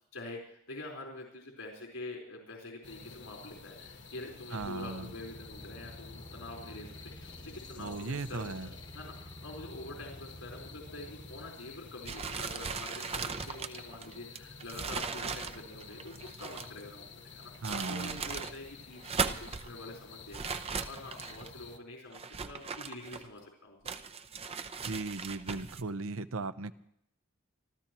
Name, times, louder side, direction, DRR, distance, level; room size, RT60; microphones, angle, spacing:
voice 1, 0.1-20.4 20.8-23.8, left 2 dB, 85° left, -1 dB, 4.4 m, -46 dB
sound 1, 2.8-21.8, left 4 dB, 55° left, 1.5 m, -51 dB
voice 2, 4.5-5.1 7.8-8.7 17.6-18.2 24.9-26.7, right 3 dB, 70° right, 12 dB, 0.8 m, -37 dB
sound 2, 4.6-11.5, equal, 20° left, 1.1 m, -50 dB
sound 3, 12.0-16.8 17.4-18.6 18.9-19.7 20.3-21.5 22.1-23.4 23.9-25.8, right 5 dB, 30° right, 0.6 m, -38 dB
27.0 x 14.0 x 3.1 m, 0.71 s
head